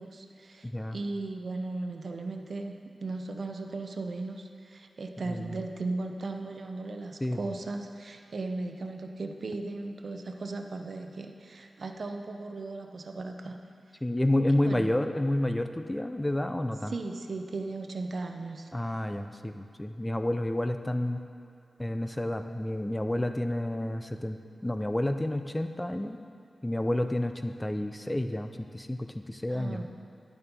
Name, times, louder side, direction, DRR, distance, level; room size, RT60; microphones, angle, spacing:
voice 1, 0.0-13.6 14.5-14.9 16.9-18.7 29.5-29.9, right 3 dB, 55° right, 4 dB, 0.7 m, -37 dB
voice 2, 0.6-1.0 5.3-5.5 7.2-7.4 14.0-16.9 18.7-21.2 21.8-24.4 24.6-26.2 26.6-29.9, left 1 dB, 10° left, 7 dB, 0.5 m, -30 dB
10.5 x 7.1 x 5.3 m, 2.4 s
wide cardioid pair, 125°, 0 cm